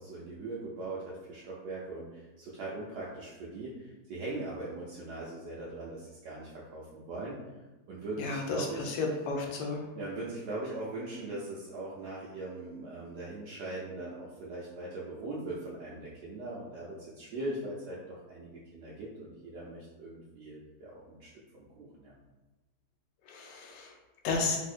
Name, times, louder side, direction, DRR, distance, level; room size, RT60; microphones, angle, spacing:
voice 1, 0.0-7.4 7.9-8.9 9.9-22.1, right 2 dB, 75° right, -6 dB, 1.1 m, -40 dB
voice 2, 8.2-9.8 23.3-23.9 24.2-24.6, left 3 dB, 85° left, 1 dB, 1.3 m, -32 dB
3.4 x 2.6 x 2.5 m, 1.1 s
omnidirectional pair, 1.9 m